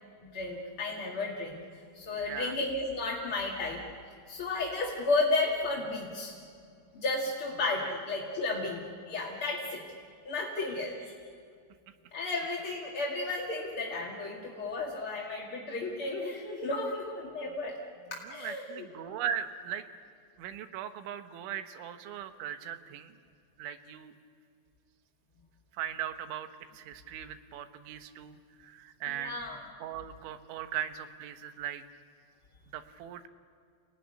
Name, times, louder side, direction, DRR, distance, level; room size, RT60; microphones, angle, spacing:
voice 1, 0.2-1.6 1.9-3.8 4.3-6.4 6.9-9.8 10.2-11.1 12.1-17.8 18.1-19.2 29.1-29.6, left 3 dB, 40° left, -3 dB, 2.0 m, -33 dB
voice 2, 2.2-2.6 18.2-19.9 20.4-23.1 23.6-24.1 25.8-26.5 26.7-28.4 28.6-29.4 29.8-31.8 32.7-33.3, right 9 dB, 80° right, 9 dB, 3.5 m, -38 dB
29.5 x 18.0 x 10.0 m, 2.4 s
omnidirectional pair, 5.4 m